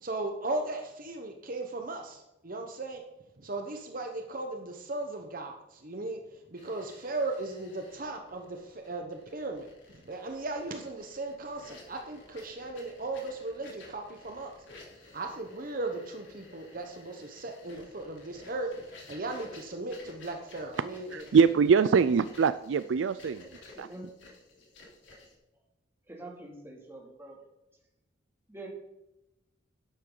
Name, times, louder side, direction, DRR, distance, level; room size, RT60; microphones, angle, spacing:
voice 1, 0.0-3.0 3.4-6.2 6.5-14.5 15.1-18.7 19.1-21.3, right 2 dB, 45° right, 4 dB, 1.0 m, -37 dB
sound 1, 6.6-25.3, left 2 dB, 75° left, 3.3 m, -53 dB
voice 2, 21.1-23.4 23.8-23.9, right 6 dB, 75° right, 14 dB, 0.4 m, -23 dB
voice 3, 23.7-24.1 26.1-27.4 28.5-28.7, right 2 dB, 15° right, -1 dB, 2.6 m, -45 dB
12.0 x 9.6 x 3.9 m, 0.92 s
head